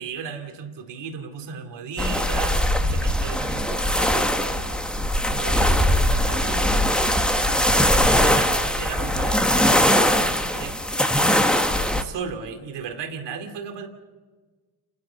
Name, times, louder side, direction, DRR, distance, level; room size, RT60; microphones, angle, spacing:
voice 1, 0.0-4.8 5.3-10.8 11.9-13.9, right 5 dB, 70° right, 4 dB, 2.6 m, -35 dB
sound 1, 2.0-12.0, equal, ahead, 1.3 m, -21 dB
29.5 x 11.0 x 8.4 m, 1.4 s
cardioid pair, 100°, 44 cm